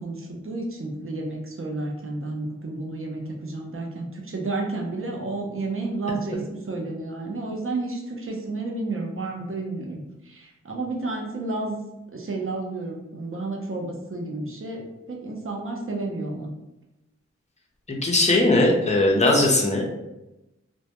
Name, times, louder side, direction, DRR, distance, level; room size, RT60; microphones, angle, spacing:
voice 1, 0.0-11.8 12.1-16.5, right 2 dB, 50° right, -1 dB, 0.6 m, -31 dB
voice 2, 18.0-19.9, left 2 dB, 25° left, -1 dB, 0.5 m, -19 dB
2.1 x 2.1 x 2.8 m, 0.95 s
wide cardioid pair, 55°, 29 cm